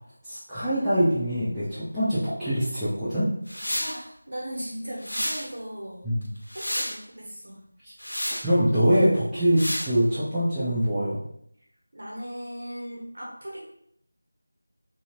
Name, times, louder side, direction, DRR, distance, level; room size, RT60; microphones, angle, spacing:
voice 1, 0.2-3.3 6.0-6.3 7.8-7.9 8.4-11.2, equal, ahead, -20 dB, 0.4 m, -24 dB
sound 1, 3.5-4.0 5.0-5.5 6.2-7.0 8.0-8.4 9.6-9.9, equal, 85° left, 0.8 m, -30 dB
voice 2, 3.8-6.1 6.5-7.6 11.9-13.6, equal, 65° right, -5 dB, 1.1 m, -37 dB
2.9 x 2.7 x 2.4 m, 0.71 s
figure-of-eight pair, 175°, 0 cm